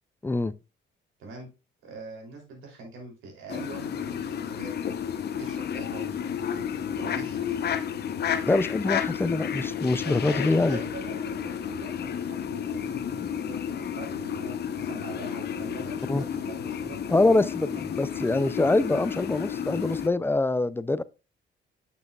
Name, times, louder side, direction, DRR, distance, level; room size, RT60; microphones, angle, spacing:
voice 1, 0.2-0.5 8.5-10.8 13.2-13.3 16.1-16.2 17.1-21.0, left 2 dB, 10° left, 0.3 m, -24 dB
voice 2, 1.8-4.7 5.3-6.7 6.9-7.8 10.0-17.0, right 3 dB, 85° right, 3.1 m, -43 dB
sound 1, 3.5-20.1, left 8 dB, 55° left, 0.8 m, -32 dB
8.7 x 6.1 x 2.3 m
cardioid pair, 90°, 20 cm